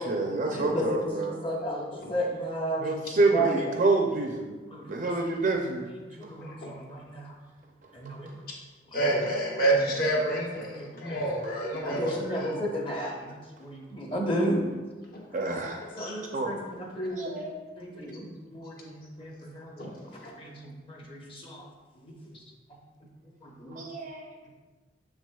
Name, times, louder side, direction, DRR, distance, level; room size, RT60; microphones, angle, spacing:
voice 1, 0.0-1.4 2.8-4.5 4.9-5.9 11.9-12.0 15.3-15.8 16.3-16.5 17.2-17.6 23.7-24.3, right 3 dB, 40° right, 1 dB, 0.5 m, -27 dB
voice 2, 0.5-1.0 1.4-2.9 3.3-3.5 4.7-4.8 6.2-7.2 7.9-8.3 10.7-11.2 11.8-13.3 13.6-14.6 16.0-17.4 17.8-19.9 20.4-20.5 20.9-21.6 23.4-23.8, right 1 dB, 30° left, -1 dB, 0.9 m, -33 dB
voice 3, 8.9-12.6 13.0-13.1 15.1-15.2 16.0-16.2 19.8-19.9 20.2-20.3, right 2 dB, 50° left, -3 dB, 1.2 m, -28 dB
6.9 x 6.1 x 2.3 m, 1.3 s
head